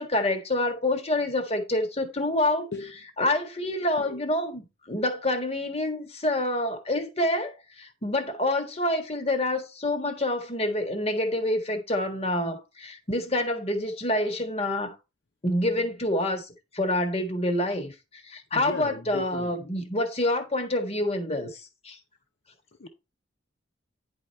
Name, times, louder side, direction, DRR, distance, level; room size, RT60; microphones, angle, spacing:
voice 1, 0.0-2.7 3.2-14.9 15.4-16.5 16.7-22.0, left 1 dB, 30° left, 1.6 m, -27 dB
voice 2, 18.5-19.5 22.8-22.9, left 3 dB, 60° left, 0.8 m, -36 dB
10.0 x 5.0 x 4.3 m
head